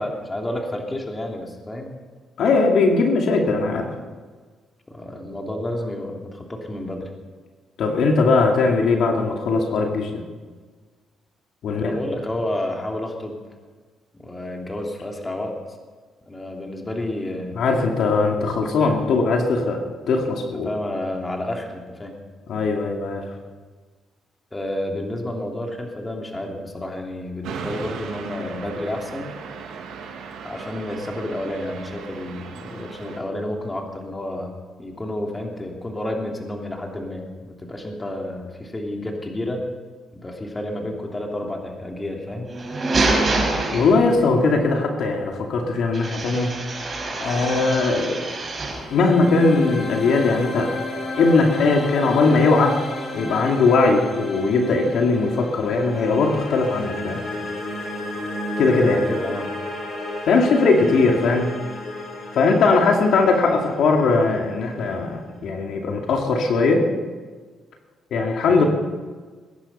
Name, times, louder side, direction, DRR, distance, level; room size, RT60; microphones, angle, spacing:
voice 1, 0.0-2.0 4.9-7.1 11.7-13.4 14.1-15.5 16.3-17.5 20.3-22.1 24.5-29.3 30.4-34.5 34.8-39.7 40.1-42.5 58.7-59.5 68.5-68.7, left 1 dB, 20° left, 1 dB, 3.1 m, -30 dB
voice 2, 2.4-3.9 7.8-10.2 11.6-11.9 17.5-20.7 22.5-23.3 43.7-46.6 47.2-48.2 48.9-50.7 51.2-52.8 53.1-57.2 58.6-59.0 60.3-61.5 62.3-66.9 68.1-68.6, left 3 dB, 70° left, 2 dB, 2.5 m, -19 dB
sound 1, 27.4-33.2, right 6 dB, 85° right, 2.2 m, -37 dB
sound 2, 42.4-44.4 45.9-48.9, right 2 dB, 35° right, 4.9 m, -25 dB
sound 3, 48.2-65.3, left 1 dB, 45° left, 5.8 m, -33 dB
21.5 x 10.5 x 5.6 m, 1.4 s
cardioid pair, 90°, 0 cm